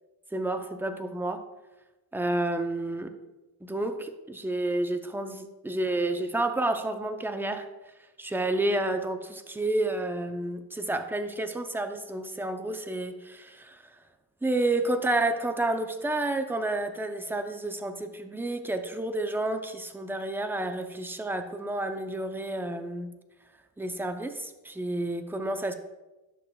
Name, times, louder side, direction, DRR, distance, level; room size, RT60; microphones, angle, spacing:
voice 1, 0.3-1.4 2.1-3.1 3.6-7.7 8.2-13.8 14.4-23.1 23.8-25.7, right 2 dB, 5° right, 6 dB, 0.5 m, -30 dB
10.5 x 6.6 x 2.3 m, 1.1 s
cardioid pair, 100°, 41 cm